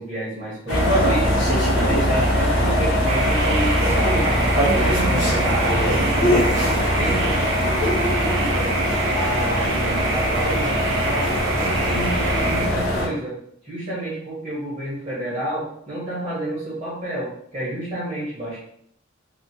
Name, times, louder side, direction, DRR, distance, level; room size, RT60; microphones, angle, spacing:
voice 1, 0.0-4.5 4.8-8.7 9.1-13.4 13.6-18.6, right 1 dB, 30° right, -8 dB, 1.1 m, -30 dB
sound 1, 0.7-13.1, equal, 65° left, 1.2 m, -21 dB
sound 2, 3.1-12.7, right 4 dB, 65° right, 0.5 m, -28 dB
3.4 x 2.3 x 2.8 m, 0.67 s
head